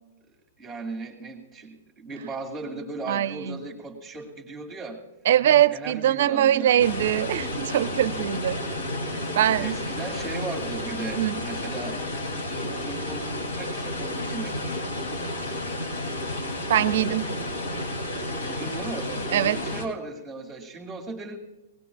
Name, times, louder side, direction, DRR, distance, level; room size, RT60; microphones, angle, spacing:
voice 1, 0.6-5.0 5.7-6.9 9.6-12.0 12.3-14.7 18.4-21.4, right 3 dB, 5° right, -4 dB, 2.2 m, -37 dB
voice 2, 3.1-3.6 5.3-8.6 9.3-9.8 11.2-11.4 16.7-17.3 19.3-19.6, right 11 dB, 60° right, 15 dB, 0.6 m, -22 dB
sound 1, 6.8-19.9, left 1 dB, 65° left, 2.8 m, -31 dB
20.0 x 18.5 x 2.3 m, 1.0 s
hypercardioid pair, 115°, 0 cm